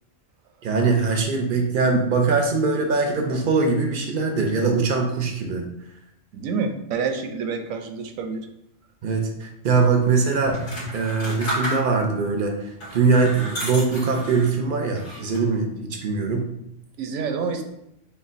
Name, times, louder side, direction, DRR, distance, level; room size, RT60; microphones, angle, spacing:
voice 1, 0.6-5.7 9.0-10.6 10.9-16.5, right 4 dB, 55° right, 3 dB, 0.6 m, -22 dB
voice 2, 6.3-8.5 17.0-17.6, right 5 dB, 80° right, 6 dB, 1.0 m, -28 dB
sound 1, 10.5-12.2 12.7-14.6 15.0-15.6, right 1 dB, 85° left, 2.1 m, -32 dB
6.6 x 2.3 x 2.5 m, 0.81 s
omnidirectional pair, 1.4 m